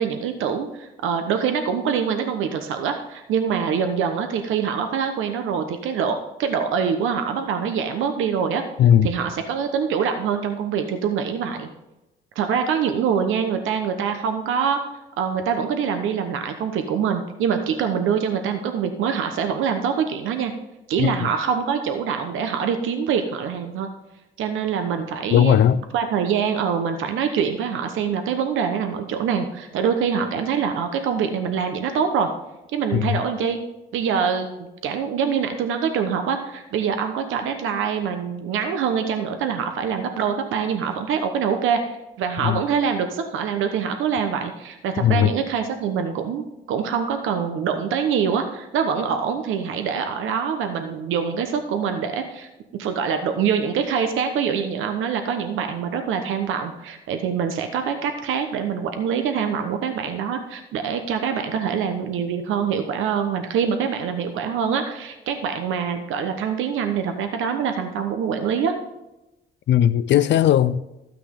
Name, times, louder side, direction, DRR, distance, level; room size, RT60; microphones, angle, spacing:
voice 1, 0.0-8.6 9.0-11.7 12.3-14.8 15.2-20.5 20.9-23.9 24.4-25.6 25.9-32.3 32.7-33.6 33.9-68.8, right 7 dB, 85° right, 1.0 m, -24 dB
voice 2, 25.3-25.8 32.9-33.2 42.4-42.6 45.0-45.3 69.7-70.8, left 10 dB, 65° left, 0.5 m, -17 dB
13.0 x 9.1 x 3.8 m
cardioid pair, 90°, 20 cm